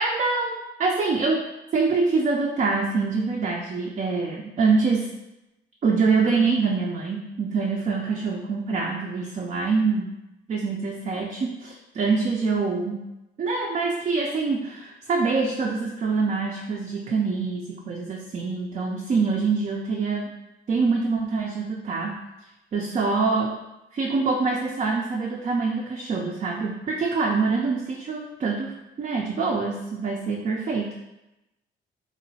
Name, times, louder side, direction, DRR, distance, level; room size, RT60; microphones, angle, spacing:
voice 1, 0.0-1.4 1.7-5.1 5.8-10.1 10.5-13.0 13.4-20.3 20.7-22.1 22.7-23.6 23.9-28.7 29.0-31.0, right 4 dB, 35° right, -1 dB, 0.4 m, -25 dB
2.9 x 2.1 x 2.7 m, 0.93 s
cardioid pair, 90°, 20 cm